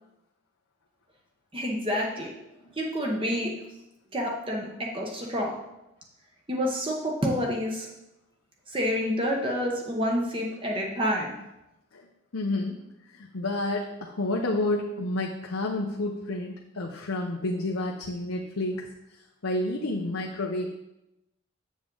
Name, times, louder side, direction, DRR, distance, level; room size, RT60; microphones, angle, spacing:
voice 1, 1.5-2.3 2.8-3.5 4.1-5.5 6.5-7.9 8.7-11.3, equal, 25° right, -1 dB, 0.9 m, -28 dB
voice 2, 12.3-12.8 13.1-18.8 19.4-20.8, left 2 dB, 85° left, 0 dB, 0.8 m, -30 dB
7.3 x 7.1 x 3.8 m, 0.91 s
head